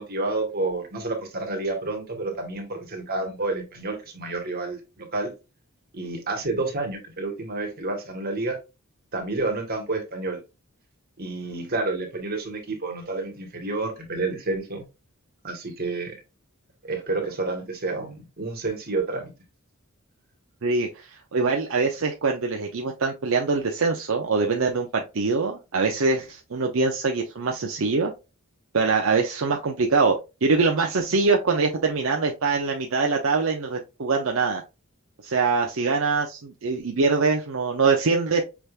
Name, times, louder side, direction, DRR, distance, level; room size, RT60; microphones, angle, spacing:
voice 1, 0.0-5.3 5.9-8.6 9.1-10.4 11.2-14.8 15.4-16.2 16.8-19.3, right 3 dB, 45° right, 1.5 m, -29 dB
voice 2, 20.6-28.1 28.7-30.1 30.4-34.6 35.2-38.4, right 4 dB, 65° right, 0.6 m, -23 dB
5.9 x 3.4 x 2.4 m
head